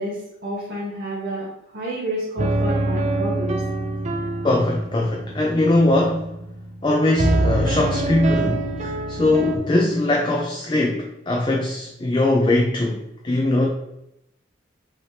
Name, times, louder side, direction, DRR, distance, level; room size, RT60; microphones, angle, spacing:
voice 1, 0.0-1.5 1.7-3.6 9.2-9.3, right 1 dB, 55° right, -8 dB, 1.2 m, -29 dB
sound 1, 2.4-6.9 7.2-9.6, right 2 dB, 35° right, 0.4 m, -25 dB
voice 2, 4.4-6.3 6.8-13.7, left 2 dB, 25° left, 0 dB, 0.4 m, -21 dB
5.6 x 2.8 x 3.3 m, 0.83 s
head